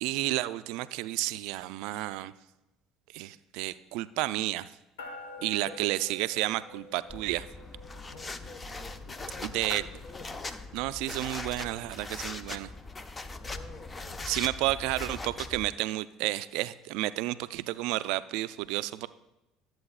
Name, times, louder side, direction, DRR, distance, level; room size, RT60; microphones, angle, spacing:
voice 1, 0.0-2.3 3.1-4.7 5.4-7.5 9.4-9.8 10.7-12.7 14.3-19.1, right 17 dB, 70° right, 15 dB, 0.3 m, -31 dB
sound 1, 5.0-12.7, left 2 dB, 85° left, 1.2 m, -50 dB
voice 2, 5.4-5.8 8.1-10.4 13.4-14.4, left 4 dB, 50° left, 7 dB, 1.3 m, -49 dB
sound 2, 7.1-15.7, left 3 dB, 25° left, 0.6 m, -40 dB
13.0 x 7.6 x 2.4 m, 0.95 s
hypercardioid pair, 70°, 0 cm